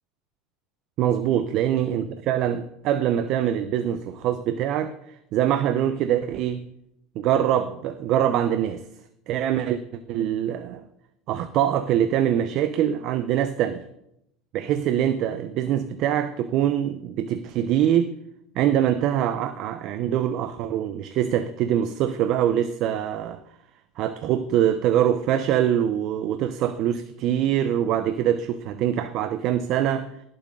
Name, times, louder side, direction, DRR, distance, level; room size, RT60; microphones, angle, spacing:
voice 1, 1.0-6.6 7.2-8.8 9.3-9.8 10.1-10.8 11.3-13.8 14.5-18.1 18.6-23.4 24.0-30.1, right 10 dB, 55° right, 0.7 m, -24 dB
17.5 x 7.8 x 3.8 m
supercardioid pair, 125°, 0 cm